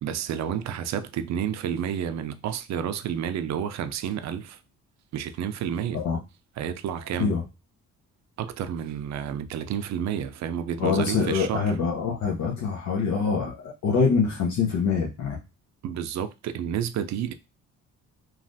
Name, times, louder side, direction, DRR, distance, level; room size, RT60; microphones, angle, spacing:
voice 1, 0.0-4.6 5.1-6.0 6.6-7.4 8.4-11.7 15.8-17.3, right 9 dB, 65° right, 0.5 m, -30 dB
voice 2, 10.8-15.4, left 5 dB, 80° left, 0.8 m, -25 dB
3.2 x 2.3 x 2.6 m
cardioid pair, 90°, 30 cm